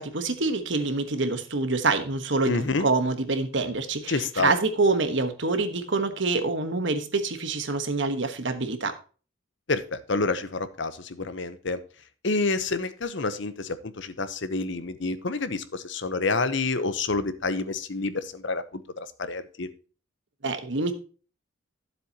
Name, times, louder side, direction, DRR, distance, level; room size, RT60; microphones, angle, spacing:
voice 1, 0.0-9.0 20.4-20.9, right 3 dB, 60° right, 9 dB, 1.3 m, -26 dB
voice 2, 2.4-2.9 4.1-4.5 9.7-11.8 12.2-19.7, left 3 dB, 60° left, 12 dB, 0.9 m, -28 dB
12.5 x 7.6 x 2.9 m, 0.37 s
head